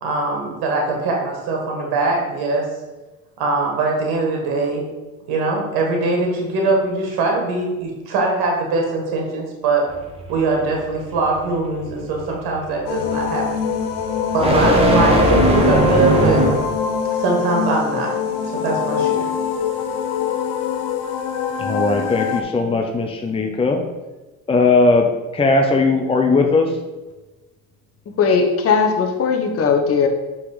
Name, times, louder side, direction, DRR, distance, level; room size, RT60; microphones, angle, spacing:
voice 1, 0.0-2.7 3.4-4.8 5.3-9.8 10.3-13.6 14.3-16.4 17.2-18.1 18.6-19.3, right 3 dB, 65° right, 0 dB, 1.9 m, -21 dB
sound 1, 9.9-16.8, right 1 dB, 15° right, 1.5 m, -20 dB
sound 2, 12.9-22.4, left 7 dB, 70° left, 1.0 m, -24 dB
voice 2, 21.6-23.8 24.5-26.7, left 3 dB, 15° left, 3 dB, 0.8 m, -18 dB
voice 3, 28.2-30.1, left 5 dB, 35° left, 2 dB, 1.1 m, -18 dB
5.7 x 4.1 x 5.0 m, 1.2 s
hypercardioid pair, 80°, 41 cm